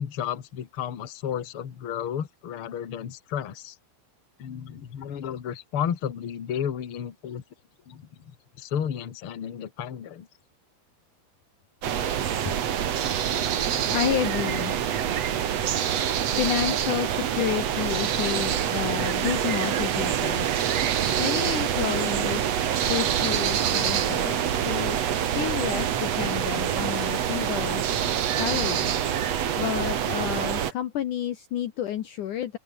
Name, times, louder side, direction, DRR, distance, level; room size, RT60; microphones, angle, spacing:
voice 1, 0.0-3.8 4.4-7.4 7.9-8.1 8.6-10.3, left 9 dB, 55° left, 1.5 m, -32 dB
sound 1, 11.8-30.7, right 9 dB, 75° right, 1.5 m, -26 dB
voice 2, 13.9-14.8 16.3-20.5 21.2-25.0 25.3-27.8 28.4-28.9 29.6-32.6, left 11 dB, 85° left, 1.7 m, -30 dB
open air
omnidirectional pair, 5.7 m